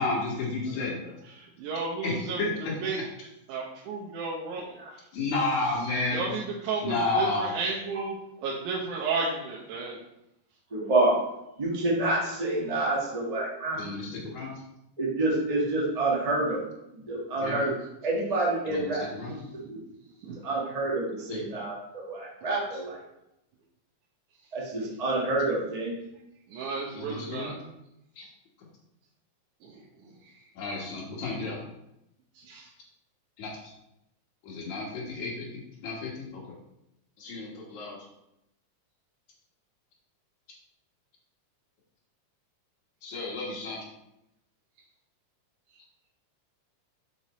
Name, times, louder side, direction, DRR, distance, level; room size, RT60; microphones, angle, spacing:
voice 1, 0.0-1.0 2.0-2.5 5.1-6.2 6.8-7.5 13.8-14.5 17.4-17.6 18.7-19.3 21.3-21.4 26.9-27.5 28.2-28.3 30.6-31.6 33.4-33.7 34.4-35.5 35.8-36.4 37.2-38.0 43.0-43.8, left 3 dB, 75° left, -3 dB, 2.8 m, -31 dB
voice 2, 0.7-2.5 2.8-3.0 3.5-5.0 6.1-8.2 8.4-10.0 19.7-19.8 20.2-20.4 26.5-27.5 29.6-29.8 30.1-30.3 32.3-32.7, right 4 dB, 90° right, -4 dB, 2.4 m, -33 dB
voice 3, 10.7-11.2 11.6-13.8 14.1-14.2 15.0-16.6 16.9-17.7 18.0-19.4 19.7-19.8 20.4-23.0 24.5-25.9, right 2 dB, 70° right, -4 dB, 0.3 m, -28 dB
5.8 x 4.9 x 4.1 m, 0.86 s
omnidirectional pair, 3.4 m